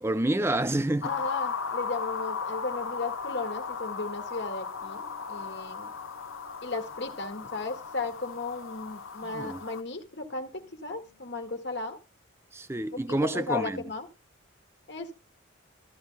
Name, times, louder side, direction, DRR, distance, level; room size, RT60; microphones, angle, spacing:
voice 1, 0.0-1.1 9.3-9.6 12.5-13.8, right 1 dB, 15° right, 0.5 m, -28 dB
sound 1, 1.0-9.8, left 5 dB, 85° left, 0.9 m, -36 dB
voice 2, 1.0-5.9 6.6-12.0 12.9-14.1 14.9-15.1, left 3 dB, 55° left, 1.8 m, -35 dB
sound 2, 4.7-11.8, left 6 dB, 65° right, 7.6 m, -65 dB
Bowed string instrument, 6.7-9.7, right 1 dB, 15° left, 6.3 m, -67 dB
14.5 x 12.5 x 2.2 m
head